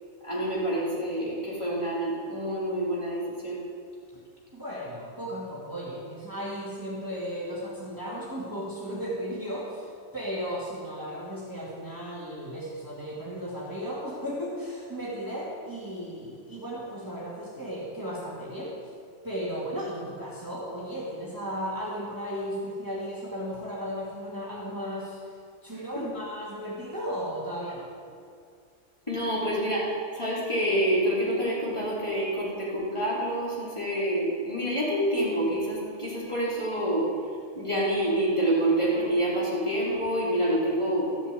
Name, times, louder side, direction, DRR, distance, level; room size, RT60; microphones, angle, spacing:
voice 1, 0.2-3.6 25.9-26.0 29.1-37.1 37.6-41.3, right 1 dB, 25° left, -8 dB, 4.2 m, -27 dB
voice 2, 4.5-18.7 19.2-25.4 25.6-27.9, equal, 15° right, -7 dB, 2.5 m, -35 dB
14.0 x 7.3 x 8.3 m, 2.2 s
omnidirectional pair, 1.2 m